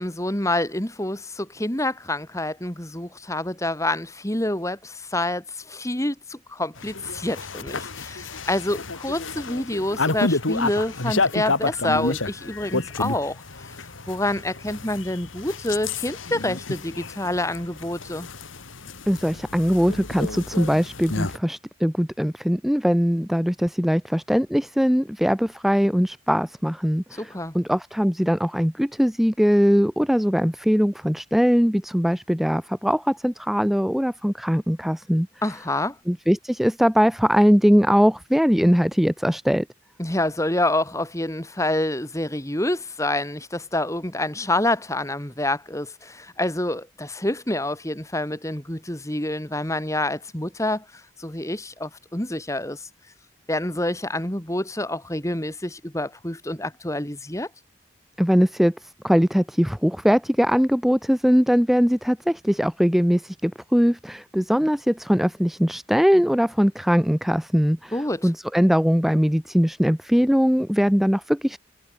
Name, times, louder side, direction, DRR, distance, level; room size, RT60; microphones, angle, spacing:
voice 1, 0.0-13.7 14.1-18.3 27.2-27.5 35.4-36.0 40.0-52.9 53.5-57.5 67.9-68.3, left 1 dB, 15° left, 2.7 m, -27 dB
sound 1, 6.8-21.4, left 3 dB, 85° left, 2.4 m, -30 dB
voice 2, 19.1-35.3 36.1-39.7 58.2-71.6, equal, ahead, 0.5 m, -21 dB
head